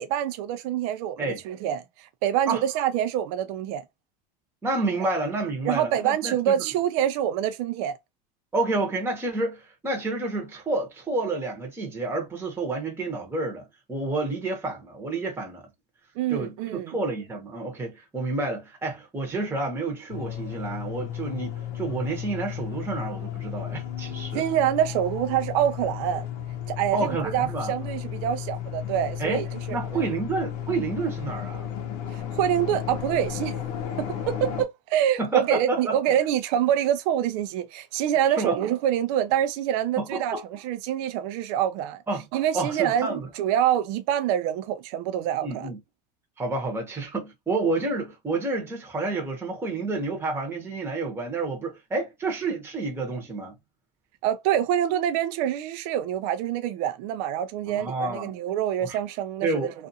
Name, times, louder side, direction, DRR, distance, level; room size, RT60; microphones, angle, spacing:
voice 1, 0.0-3.8 5.7-7.9 16.2-17.0 24.3-26.3 26.7-30.1 32.1-33.6 34.0-42.0 42.3-45.7 54.2-59.7, right 10 dB, 55° right, 0.5 m, -26 dB
voice 2, 4.6-6.5 8.5-15.7 16.3-24.4 26.9-27.7 29.2-29.4 29.7-31.7 35.2-36.0 38.4-38.6 40.0-40.4 42.1-42.3 42.5-43.3 45.4-45.8 46.4-53.5 57.7-58.3 58.8-59.0 59.4-59.7, right 3 dB, 10° right, 0.9 m, -29 dB
sound 1, 20.1-34.6, left 10 dB, 65° left, 0.7 m, -34 dB
2.5 x 2.4 x 2.7 m
supercardioid pair, 135°, 21 cm